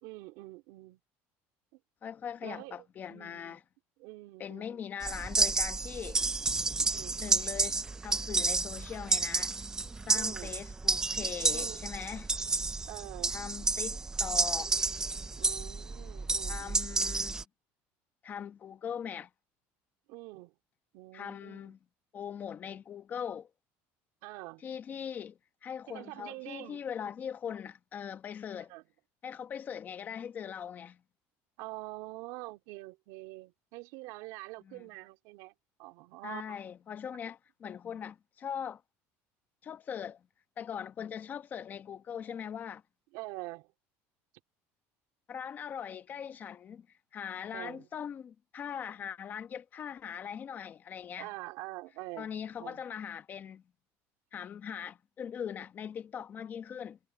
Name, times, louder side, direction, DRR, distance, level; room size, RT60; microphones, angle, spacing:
voice 1, 0.0-1.0 1.7-1.8 2.4-2.8 3.1-3.6 4.0-4.8 6.8-7.2 10.1-10.6 11.5-11.8 12.9-13.4 15.4-16.8 20.1-20.6 20.9-21.7 24.2-24.6 25.9-26.8 28.5-28.8 31.6-35.5 35.8-36.5 43.1-43.7 47.5-47.9 51.2-52.3 52.6-52.8, right 21 dB, 75° right, 3.3 m, -45 dB
voice 2, 2.0-3.6 4.4-6.2 7.2-9.6 10.1-12.3 13.3-14.7 16.5-17.4 18.2-19.3 21.1-21.8 22.1-23.5 24.6-28.7 29.2-31.0 34.6-34.9 36.2-38.8 39.6-40.2 40.6-42.8 45.3-46.9 47.1-51.3 52.2-53.6 54.3-57.0, left 8 dB, 30° left, 1.0 m, -41 dB
sound 1, 5.0-17.4, right 3 dB, 10° right, 0.4 m, -31 dB
cardioid pair, 155°, 6 cm